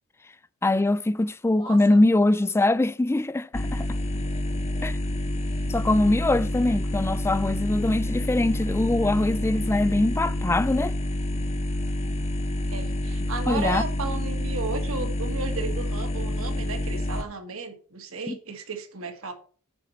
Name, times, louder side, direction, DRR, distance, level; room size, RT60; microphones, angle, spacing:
voice 1, 0.6-3.9 4.8-5.0 5.7-10.9 13.5-13.8 18.3-18.4, left 2 dB, 10° left, 0.3 m, -23 dB
voice 2, 1.6-2.0 5.4-5.7 6.6-6.8 12.7-19.3, right 4 dB, 65° right, 1.7 m, -34 dB
sound 1, 3.5-17.2, left 1 dB, 30° left, 0.8 m, -28 dB
9.8 x 4.4 x 7.1 m
head